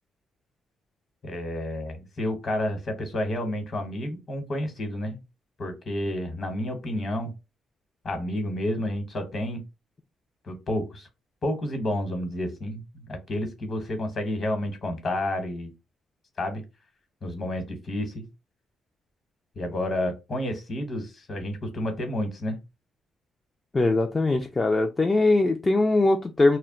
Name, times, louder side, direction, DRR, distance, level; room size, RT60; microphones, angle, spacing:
voice 1, 1.2-5.2 5.6-7.3 8.0-9.6 10.4-11.1 11.4-15.7 16.4-16.6 17.2-18.2 19.6-22.6, left 1 dB, 45° left, 6 dB, 1.1 m, -30 dB
voice 2, 23.7-26.6, left 2 dB, 25° left, 4 dB, 0.3 m, -21 dB
2.2 x 2.1 x 3.6 m, 0.26 s
cardioid pair, 90°, 0 cm